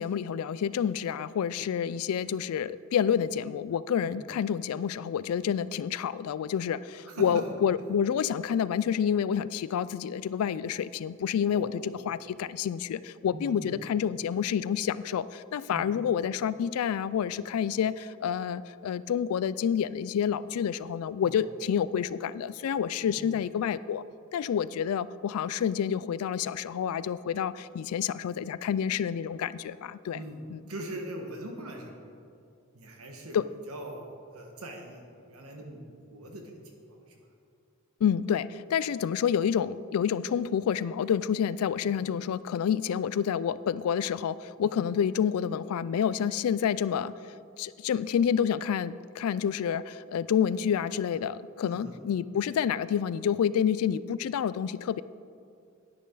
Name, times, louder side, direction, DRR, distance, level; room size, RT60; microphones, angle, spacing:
voice 1, 0.0-24.0 24.3-30.2 30.5-30.6 33.3-33.4 38.0-47.1 47.6-55.0, left 8 dB, 85° left, 17 dB, 0.3 m, -28 dB
voice 2, 11.4-11.8 12.2-12.3 13.3-13.7 15.7-15.9 21.2-21.3 23.1-23.2 30.1-30.4 30.7-32.0 32.7-33.4 33.7-35.8 36.1-36.6 36.9-37.2 41.9-42.0 44.6-44.8 51.6-51.9, right 1 dB, 90° right, 2 dB, 1.5 m, -42 dB
10.0 x 9.7 x 3.9 m, 2.4 s
head